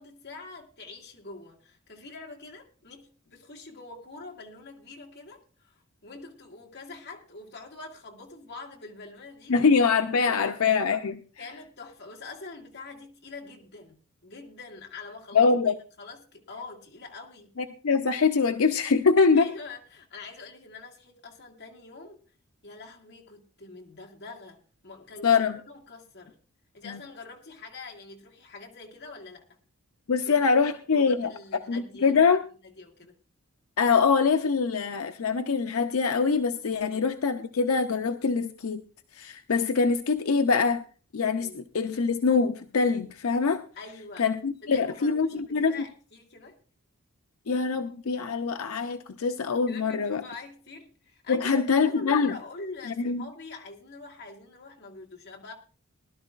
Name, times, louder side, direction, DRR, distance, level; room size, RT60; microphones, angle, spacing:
voice 1, 0.0-9.6 10.4-10.5 11.4-15.5 16.0-17.6 19.3-22.2 22.6-25.4 25.7-26.4 26.7-29.5 30.3-32.4 32.6-33.2 36.9-37.0 41.4-41.6 43.8-44.3 44.6-46.6 49.7-55.5, left 3 dB, 55° left, 0 dB, 2.1 m, -45 dB
voice 2, 9.5-11.2 15.3-15.8 17.8-19.5 25.2-25.6 26.9-27.0 30.1-31.3 31.7-32.4 33.8-38.8 39.1-40.8 41.1-43.6 44.2-45.7 47.5-50.2 51.3-52.3 53.0-53.2, left 5 dB, 85° left, 7 dB, 0.6 m, -24 dB
20.5 x 12.0 x 2.4 m, 0.38 s
head